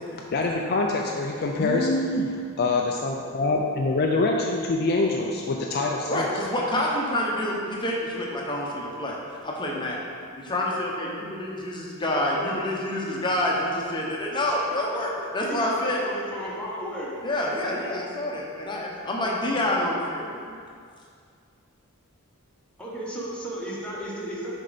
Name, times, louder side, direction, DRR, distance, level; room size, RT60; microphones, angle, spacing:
voice 1, 0.1-6.3, left 2 dB, 45° left, 0 dB, 0.4 m, -25 dB
voice 2, 6.1-16.0 17.2-20.6, left 1 dB, 20° left, -2 dB, 0.8 m, -28 dB
voice 3, 15.4-17.1 22.8-24.5, right 1 dB, 5° left, -6 dB, 1.1 m, -34 dB
6.3 x 4.5 x 4.0 m, 2.2 s
head